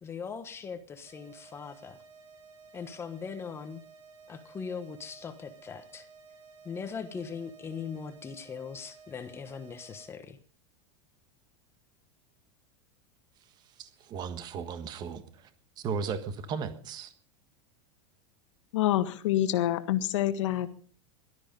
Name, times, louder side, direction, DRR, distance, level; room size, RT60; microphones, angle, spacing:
voice 1, 0.0-2.0 2.7-3.8 4.3-6.1 6.6-10.4, left 6 dB, 15° left, 1.2 m, -40 dB
sound 1, 1.1-10.1, right 5 dB, 70° right, 6.2 m, -54 dB
voice 2, 13.8-15.5 15.8-17.1, right 6 dB, 25° right, 1.5 m, -36 dB
voice 3, 18.7-20.7, left 13 dB, 85° left, 1.6 m, -27 dB
18.0 x 13.0 x 5.3 m
supercardioid pair, 165°, 15 cm